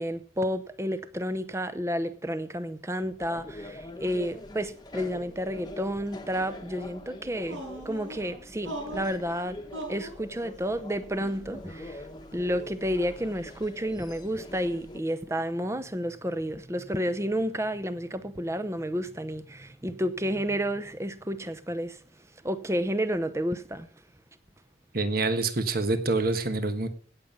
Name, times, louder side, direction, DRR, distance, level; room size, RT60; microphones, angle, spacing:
voice 1, 0.0-9.6 9.9-12.0 12.3-22.0 22.4-23.9, equal, 15° right, 0.7 m, -31 dB
sound 1, 3.2-15.0, left 1 dB, 20° left, 1.1 m, -44 dB
sound 2, 7.4-8.2 8.6-9.2 9.7-10.2, right 1 dB, 90° right, 6.7 m, -38 dB
voice 2, 24.9-26.9, right 3 dB, 50° right, 1.4 m, -26 dB
17.0 x 7.4 x 5.4 m
head